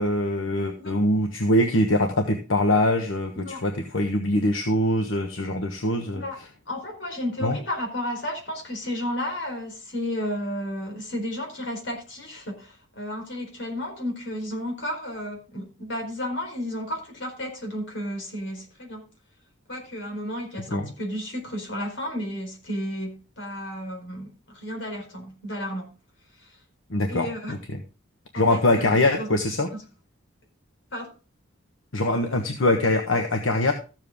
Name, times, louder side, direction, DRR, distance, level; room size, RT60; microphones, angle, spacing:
voice 1, 0.0-6.2 7.4-7.6 20.7-20.9 26.9-27.8 28.3-29.7 31.9-33.7, left 1 dB, 80° left, 1.3 m, -23 dB
voice 2, 6.1-6.4 6.7-19.1 19.7-25.9 26.4-26.5 27.1-27.6 28.3-29.3 29.7-29.8 30.9-31.1, equal, 60° left, 4.3 m, -32 dB
14.0 x 7.6 x 3.5 m
head